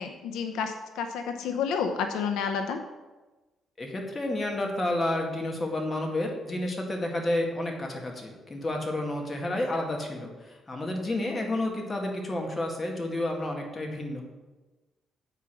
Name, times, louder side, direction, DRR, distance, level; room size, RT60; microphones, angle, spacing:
voice 1, 0.0-2.8 9.7-9.9, left 6 dB, 90° left, 6 dB, 0.6 m, -30 dB
voice 2, 3.8-14.2, left 1 dB, 25° left, 1 dB, 1.8 m, -30 dB
8.2 x 4.9 x 5.9 m, 1.2 s
cardioid pair, 90°, 0 cm